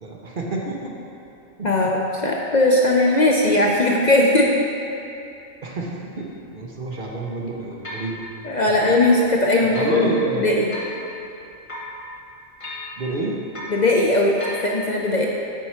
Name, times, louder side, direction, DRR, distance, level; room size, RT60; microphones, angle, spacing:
voice 1, 0.0-0.9 1.6-1.9 5.6-8.2 8.7-8.9 9.6-10.5 13.0-13.3, right 2 dB, 45° right, -2 dB, 0.9 m, -29 dB
voice 2, 1.6-4.5 8.4-10.1 10.4-10.7 13.7-15.3, left 2 dB, 55° left, -2 dB, 0.5 m, -18 dB
sound 1, 6.2-6.3 6.9-7.0 7.8-8.1 8.8-9.0 9.7-10.0 10.7-11.0 11.7-12.0 12.6-12.9 13.5-13.8 14.4-14.7, left 1 dB, 25° left, 1.1 m, -34 dB
9.1 x 4.5 x 4.4 m, 2.8 s
omnidirectional pair, 1.3 m